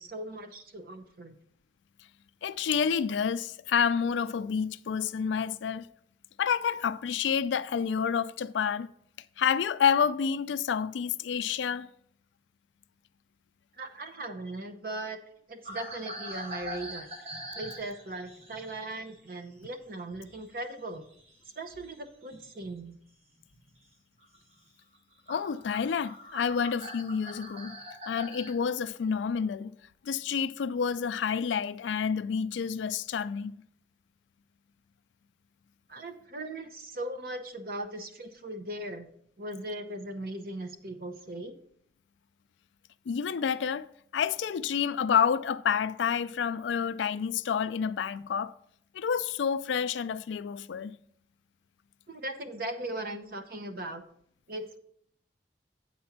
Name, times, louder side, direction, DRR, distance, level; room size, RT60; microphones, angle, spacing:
voice 1, 0.0-1.4 13.8-15.2 15.5-17.1 17.5-21.0 21.6-22.9 35.9-39.1 39.4-41.5 52.1-54.0 54.5-54.8, right 1 dB, 50° right, 0.8 m, -38 dB
voice 2, 2.4-5.9 6.4-8.9 9.4-11.9 25.3-27.8 28.1-29.8 30.0-33.6 43.1-43.9 44.1-48.5 48.9-51.0, left 7 dB, 85° left, 0.4 m, -29 dB
sound 1, 15.6-20.5 20.7-22.8 23.4-23.7 24.2-24.4 24.9-25.0 25.3-28.6, equal, 35° right, 1.4 m, -43 dB
8.7 x 4.3 x 5.9 m
head